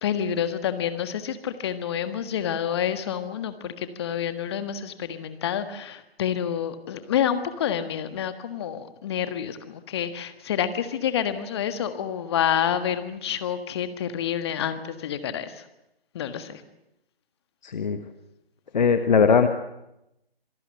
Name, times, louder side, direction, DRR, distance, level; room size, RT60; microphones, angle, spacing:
voice 1, 0.0-15.6 16.1-16.6, left 9 dB, 25° left, 10 dB, 1.6 m, -28 dB
voice 2, 17.6-18.0 18.7-19.5, left 6 dB, 45° left, 8 dB, 1.5 m, -19 dB
26.5 x 18.0 x 7.9 m, 0.88 s
figure-of-eight pair, 150°, 31 cm